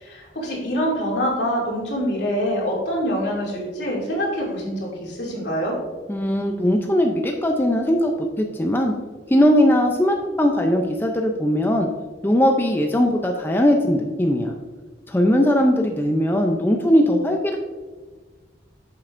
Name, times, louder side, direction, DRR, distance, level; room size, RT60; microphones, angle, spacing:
voice 1, 0.0-5.8, equal, 70° left, -3 dB, 2.5 m, -25 dB
voice 2, 6.1-8.9 9.3-11.9 12.2-14.6 15.1-17.6, equal, 10° left, 2 dB, 0.5 m, -19 dB
9.3 x 7.4 x 2.6 m, 1.4 s
head